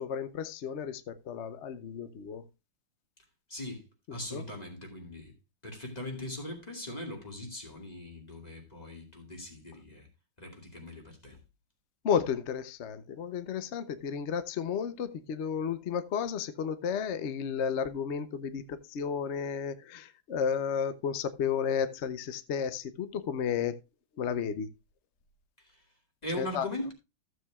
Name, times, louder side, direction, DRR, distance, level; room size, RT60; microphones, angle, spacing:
voice 1, 0.0-2.4 4.3-4.4 12.0-23.7 24.2-24.7 26.4-26.7, left 7 dB, 65° left, 0.7 m, -32 dB
voice 2, 3.5-5.3 5.6-10.1 10.4-11.4 25.6-25.8 26.2-26.9, left 1 dB, 20° left, 2.3 m, -40 dB
14.5 x 7.8 x 2.3 m
omnidirectional pair, 2.2 m